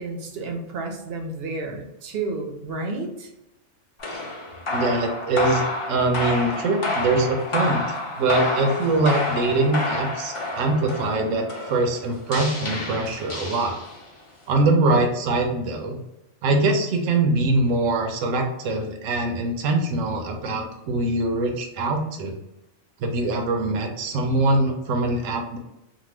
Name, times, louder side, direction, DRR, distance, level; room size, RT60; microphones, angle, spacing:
voice 1, 0.0-3.3, right 3 dB, 60° right, 2 dB, 0.7 m, -31 dB
sound 1, 4.0-14.2, left 2 dB, 35° left, 0.6 m, -29 dB
voice 2, 4.7-13.7 14.5-16.0 16.4-22.3 23.0-25.6, right 2 dB, 85° right, 3 dB, 1.0 m, -23 dB
2.8 x 2.2 x 3.2 m, 0.91 s
omnidirectional pair, 1.3 m